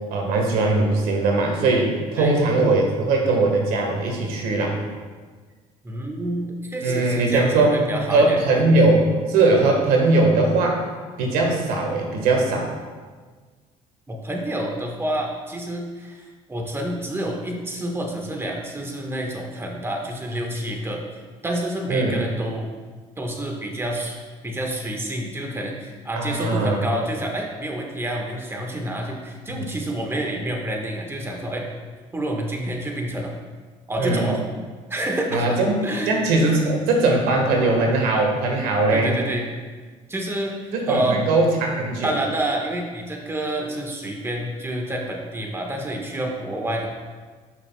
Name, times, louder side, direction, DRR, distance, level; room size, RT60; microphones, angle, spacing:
voice 1, 0.1-4.8 6.8-7.7 8.1-10.8 11.2-12.7 21.9-22.1 26.1-26.8 29.5-29.6 34.0-34.3 35.3-35.8 36.1-39.1 40.7-42.1, right 2 dB, 80° right, 1 dB, 1.4 m, -20 dB
voice 2, 5.8-8.4 14.1-21.0 21.4-22.7 23.2-24.2 24.4-31.7 32.1-33.3 33.9-34.4 34.9-35.4 35.8-36.1 38.9-39.5 40.1-41.2 42.0-46.9, right 1 dB, 15° right, 1 dB, 1.4 m, -28 dB
11.0 x 5.9 x 2.2 m, 1.5 s
supercardioid pair, 75°, 15 cm